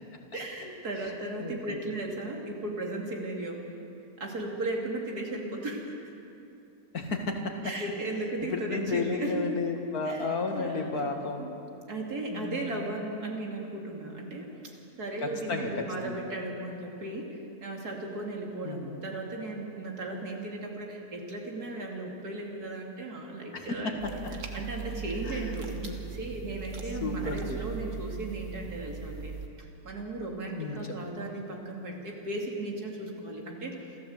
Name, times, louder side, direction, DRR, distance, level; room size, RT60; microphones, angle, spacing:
voice 1, 0.3-3.6 4.2-5.9 7.6-9.5 10.0-11.1 11.4-11.5 11.9-14.5 15.0-24.2 24.5-33.8, right 2 dB, 75° right, 0 dB, 3.3 m, -36 dB
voice 2, 1.4-1.8 6.9-7.5 8.4-11.5 12.3-12.9 15.2-16.2 18.6-18.9 23.5-24.1 24.5-24.6 25.2-26.0 27.0-27.6 30.6-30.9, left 3 dB, 70° left, 3 dB, 2.5 m, -33 dB
sound 1, 24.0-29.5, right 6 dB, 50° right, 1.5 m, -39 dB
27.0 x 14.5 x 8.0 m, 2.8 s
omnidirectional pair, 1.6 m